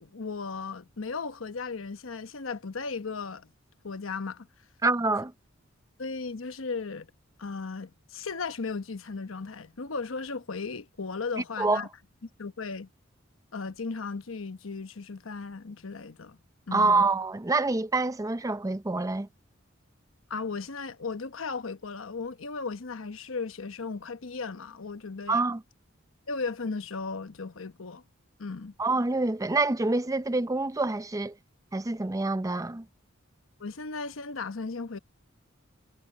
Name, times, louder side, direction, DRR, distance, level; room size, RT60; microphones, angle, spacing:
voice 1, 0.0-3.5 3.8-4.5 6.0-7.1 7.4-11.9 12.4-12.9 13.5-16.4 16.7-17.1 20.3-25.4 26.3-28.0 28.4-28.7 33.6-35.0, left 4 dB, 85° left, 1.0 m, -36 dB
voice 2, 4.8-5.3 11.6-11.8 16.7-19.3 25.3-25.6 28.8-31.3 31.7-32.9, right 3 dB, 15° right, 0.6 m, -26 dB
head